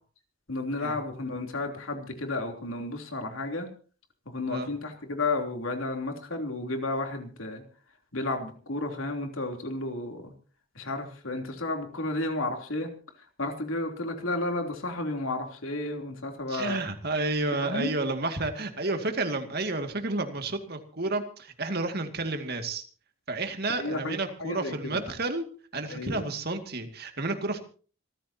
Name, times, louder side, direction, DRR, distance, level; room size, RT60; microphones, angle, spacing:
voice 1, 0.5-3.7 4.2-7.6 8.1-10.3 10.7-12.9 13.4-16.8 17.6-17.9 23.7-25.0 25.9-26.3, left 2 dB, 75° left, 4 dB, 3.4 m, -32 dB
voice 2, 16.5-22.8 23.3-25.4 25.7-27.6, right 2 dB, 50° right, 6 dB, 2.2 m, -31 dB
26.5 x 14.5 x 2.9 m, 0.40 s
head